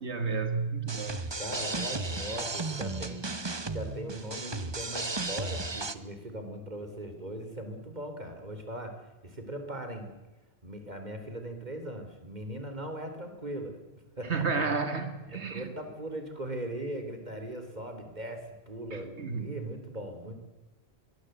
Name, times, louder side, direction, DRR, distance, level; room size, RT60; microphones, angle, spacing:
voice 1, 0.0-1.2 14.3-15.7 18.9-19.5, right 4 dB, 85° right, 8 dB, 2.0 m, -31 dB
sound 1, 0.9-5.9, right 3 dB, 25° right, 1.1 m, -34 dB
voice 2, 1.4-3.2 3.7-9.0 9.2-10.1 10.6-13.8 14.2-14.5 15.3-20.4, right 1 dB, 40° right, 6 dB, 3.9 m, -39 dB
25.0 x 21.5 x 8.1 m, 1.2 s
omnidirectional pair, 1.1 m